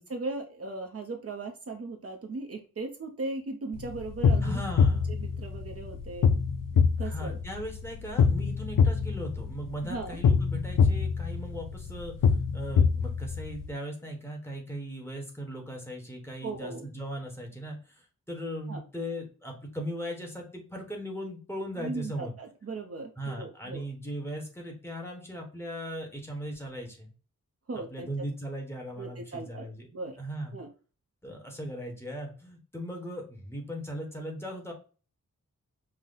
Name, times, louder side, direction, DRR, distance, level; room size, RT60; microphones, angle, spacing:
voice 1, 0.0-4.6 4.9-6.3 7.0-7.4 9.8-10.2 16.4-16.9 18.7-18.8 21.8-23.8 27.7-28.3 29.0-29.7 29.9-30.2 30.5-30.7, right 3 dB, 45° right, 4 dB, 0.6 m, -38 dB
sound 1, 3.7-13.7, left 6 dB, 85° left, 0.5 m, -25 dB
voice 2, 4.4-5.2 7.0-22.3 23.2-27.1 27.9-29.9 30.2-30.6 31.2-34.7, equal, 10° left, 0 dB, 1.0 m, -38 dB
5.5 x 2.1 x 3.9 m, 0.36 s
wide cardioid pair, 175°, 32 cm